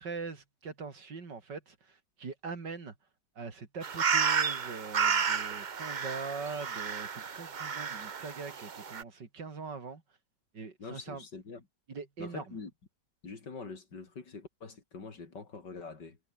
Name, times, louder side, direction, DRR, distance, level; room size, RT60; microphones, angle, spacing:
voice 1, 0.0-2.9 3.4-10.0 10.5-11.2 11.9-12.6, right 4 dB, 75° right, 3.7 m, -42 dB
sound 1, 3.8-9.0, right 6 dB, 40° right, 0.7 m, -32 dB
voice 2, 10.8-11.7 12.2-12.7 13.2-16.2, left 4 dB, 75° left, 4.0 m, -44 dB
omnidirectional pair, 1.9 m